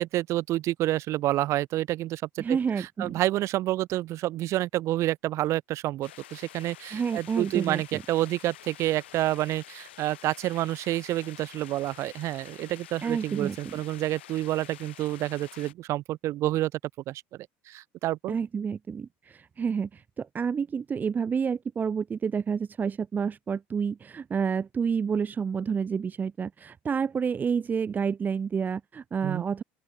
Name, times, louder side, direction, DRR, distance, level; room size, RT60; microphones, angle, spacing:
voice 1, 0.0-16.7 17.1-17.2 17.7-18.4 29.2-29.4, right 15 dB, 55° right, 4.2 m, -29 dB
voice 2, 2.4-3.2 6.9-8.0 13.0-13.8 18.3-29.6, right 6 dB, 30° right, 2.0 m, -29 dB
sound 1, 6.0-15.7, left 13 dB, 85° left, 5.9 m, -49 dB
open air
hypercardioid pair, 80°, 6 cm